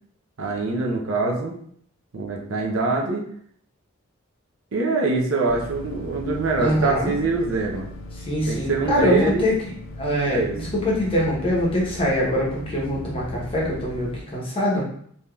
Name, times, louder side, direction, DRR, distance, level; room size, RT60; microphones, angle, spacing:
voice 1, 0.4-1.5 2.1-3.2 4.7-7.9 8.5-9.5 10.2-10.6, right 3 dB, 65° right, 0 dB, 0.6 m, -24 dB
sound 1, 5.5-14.2, left 1 dB, 75° left, 0.5 m, -37 dB
voice 2, 6.6-7.2 8.2-9.5 10.0-10.4 10.7-14.8, equal, 25° left, -5 dB, 0.8 m, -23 dB
3.4 x 2.7 x 2.3 m, 0.63 s
head